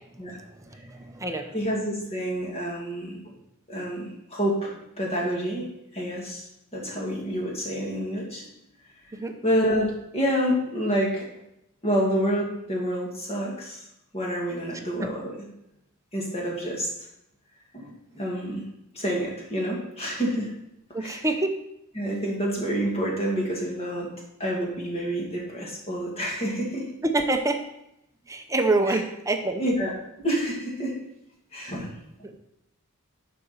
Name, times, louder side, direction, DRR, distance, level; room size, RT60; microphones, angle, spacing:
voice 1, 0.5-1.6 9.1-9.4 15.0-15.1 20.9-21.6 27.0-27.6 28.3-29.6 32.2-32.3, right 2 dB, 15° right, 5 dB, 0.7 m, -26 dB
voice 2, 1.5-3.2 3.7-5.6 5.9-6.5 6.7-8.5 9.4-11.3 11.8-13.8 14.1-15.3 16.1-16.9 17.7-18.6 18.9-20.5 21.0-21.2 22.0-24.1 24.4-26.8 28.9-29.0 29.6-29.9 30.2-30.9 31.5-31.9 32.2-32.3, equal, 30° left, -3 dB, 2.1 m, -28 dB
11.5 x 5.1 x 4.3 m, 0.83 s
head